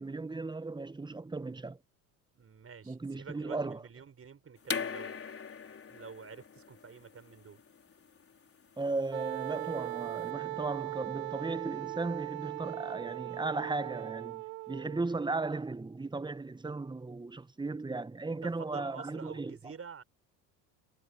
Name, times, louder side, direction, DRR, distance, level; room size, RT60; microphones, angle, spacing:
voice 1, 0.0-1.8 2.9-3.8 8.8-19.7, right 3 dB, 10° right, 1.2 m, -36 dB
voice 2, 2.4-5.3 5.9-7.6 18.3-20.0, right 6 dB, 30° right, 5.5 m, -48 dB
sound 1, 4.6-10.2, left 6 dB, 30° left, 4.6 m, -41 dB
Wind instrument woodwind instrument, 9.1-15.1, right 26 dB, 70° right, 1.4 m, -39 dB
supercardioid pair, 80°, 44 cm